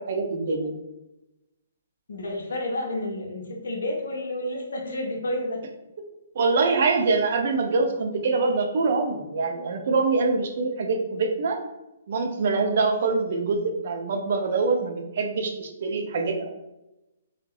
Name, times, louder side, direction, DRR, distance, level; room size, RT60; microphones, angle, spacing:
voice 1, 0.1-0.8 6.3-11.6 12.1-16.5, right 4 dB, 55° right, 3 dB, 0.4 m, -24 dB
voice 2, 2.1-5.6 6.8-6.9, left 1 dB, 70° left, 0 dB, 0.5 m, -30 dB
2.6 x 2.1 x 2.3 m, 0.96 s
figure-of-eight pair, 130°, 0 cm